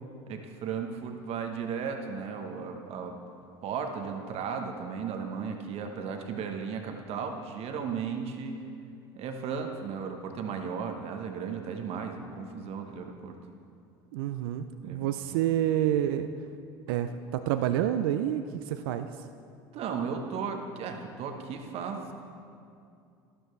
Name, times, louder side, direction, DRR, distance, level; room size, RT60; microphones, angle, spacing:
voice 1, 0.3-3.2 3.6-8.6 9.1-13.4 14.8-15.5 19.7-22.1, right 6 dB, 55° right, 4 dB, 1.1 m, -35 dB
voice 2, 14.1-16.3 16.9-19.1, right 11 dB, 75° right, 9 dB, 0.4 m, -28 dB
12.5 x 12.5 x 3.3 m, 2.4 s
hypercardioid pair, 75°, 12 cm